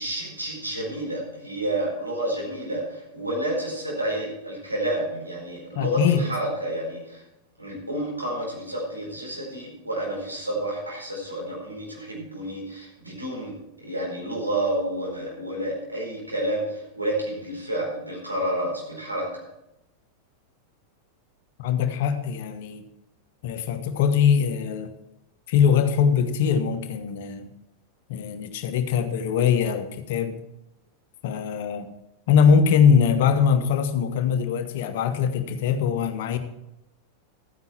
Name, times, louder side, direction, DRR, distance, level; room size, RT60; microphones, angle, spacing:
voice 1, 0.0-7.2 7.6-19.4, right 1 dB, 85° right, 4.5 m, -30 dB
voice 2, 5.7-6.3 21.6-22.8 23.4-24.9 25.5-27.5 28.1-30.4 31.2-31.9 32.3-36.4, left 7 dB, 55° left, 1.2 m, -22 dB
13.5 x 9.6 x 4.5 m
figure-of-eight pair, 90°, 0 cm